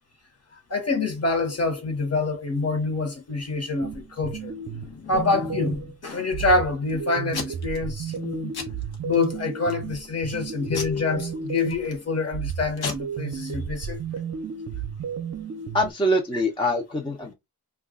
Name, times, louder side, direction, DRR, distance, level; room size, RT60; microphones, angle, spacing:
voice 1, 0.7-4.5 5.1-8.5 9.0-14.0, left 3 dB, 40° left, 1.1 m, -26 dB
sound 1, 3.8-5.9 6.3-11.9 12.3-15.9, right 7 dB, 45° right, 0.6 m, -33 dB
Packing tape duct tape / Tearing, 4.6-5.9 6.4-6.9 7.3-7.8 8.1-8.3 8.5-9.2 9.7-10.1 10.7-12.0 12.5-12.6 12.8-12.9, left 4 dB, 85° left, 1.0 m, -34 dB
voice 2, 15.7-17.3, equal, 15° left, 0.5 m, -24 dB
2.3 x 2.3 x 3.6 m
wide cardioid pair, 100°, 37 cm